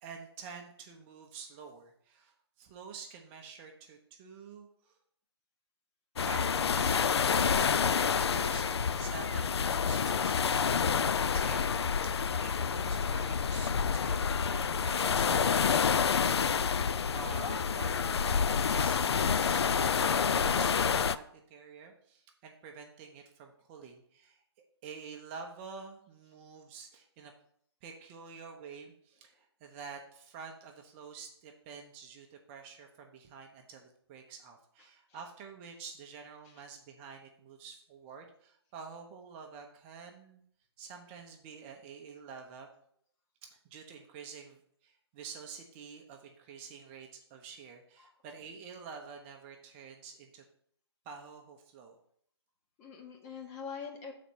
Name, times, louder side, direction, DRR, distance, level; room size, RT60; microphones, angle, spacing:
voice 1, 0.0-4.9 6.2-7.4 7.7-10.8 11.3-11.6 12.0-24.4 24.8-27.3 27.8-40.4 40.8-42.7 43.7-50.4 51.1-52.0, right 5 dB, 25° right, 2 dB, 0.8 m, -48 dB
sound 1, 6.2-21.2, left 6 dB, 70° left, 0.4 m, -28 dB
voice 2, 34.8-35.2 36.4-36.6 48.0-48.1 52.8-54.1, left 6 dB, 25° left, 2 dB, 1.1 m, -45 dB
6.2 x 4.1 x 6.1 m, 0.66 s
figure-of-eight pair, 135°, 14 cm